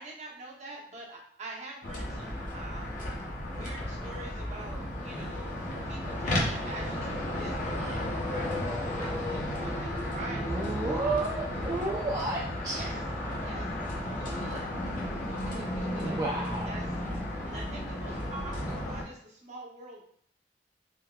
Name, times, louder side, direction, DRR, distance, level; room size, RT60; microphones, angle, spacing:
voice 1, 0.0-3.1 3.5-5.6 5.8-11.0 12.7-13.0 13.4-13.7 14.0-14.7 15.1-16.2 16.6-16.9 17.4-20.0, right 2 dB, 40° right, -2 dB, 0.7 m, -45 dB
sound 1, 1.8-19.0, left 1 dB, 50° left, 0.7 m, -34 dB
voice 2, 10.5-12.8 16.0-16.9, right 2 dB, 20° right, -4 dB, 0.3 m, -32 dB
3.5 x 2.8 x 2.2 m, 0.62 s
head